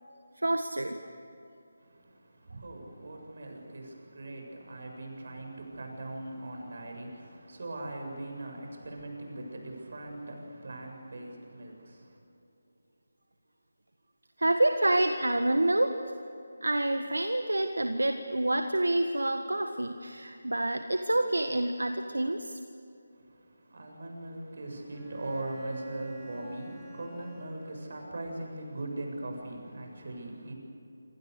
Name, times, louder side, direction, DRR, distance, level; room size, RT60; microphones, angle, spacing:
voice 1, 0.4-1.1 14.4-16.1 16.6-22.6, right 1 dB, 80° right, 7 dB, 1.5 m, -28 dB
voice 2, 1.8-12.2 23.1-30.5, right 1 dB, 60° right, 2 dB, 7.6 m, -40 dB
Bowed string instrument, 24.9-28.4, right 2 dB, ahead, 7.7 m, -48 dB
27.0 x 27.0 x 6.8 m, 2.7 s
figure-of-eight pair, 155°, 0 cm